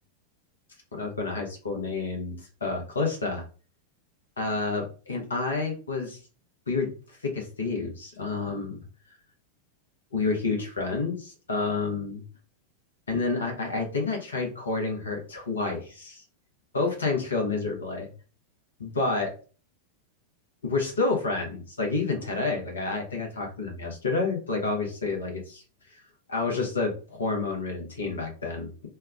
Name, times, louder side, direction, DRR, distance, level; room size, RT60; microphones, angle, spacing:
voice 1, 0.9-3.4 4.4-6.2 6.7-6.9 7.2-8.8 10.1-12.2 13.1-16.2 16.7-18.1 18.8-19.3 20.6-25.6 26.3-28.7, left 3 dB, 70° left, 1 dB, 0.9 m, -29 dB
3.4 x 2.3 x 3.4 m, 0.37 s
figure-of-eight pair, 90°, 0 cm